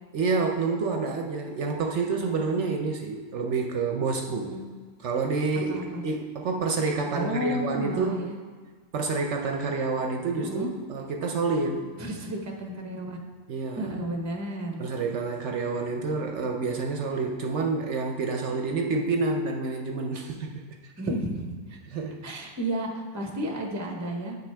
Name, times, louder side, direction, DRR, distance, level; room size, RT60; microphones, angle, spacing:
voice 1, 0.1-4.5 5.0-8.3 8.9-11.9 13.5-13.9 14.8-20.9 21.9-22.2, right 4 dB, 65° right, 2 dB, 0.9 m, -28 dB
voice 2, 4.3-4.6 5.7-6.0 7.1-8.4 10.4-10.7 12.0-13.2 13.8-14.8 21.0-21.8 22.2-24.3, equal, 15° right, 1 dB, 0.7 m, -32 dB
8.5 x 6.1 x 3.3 m, 1.5 s
omnidirectional pair, 1.4 m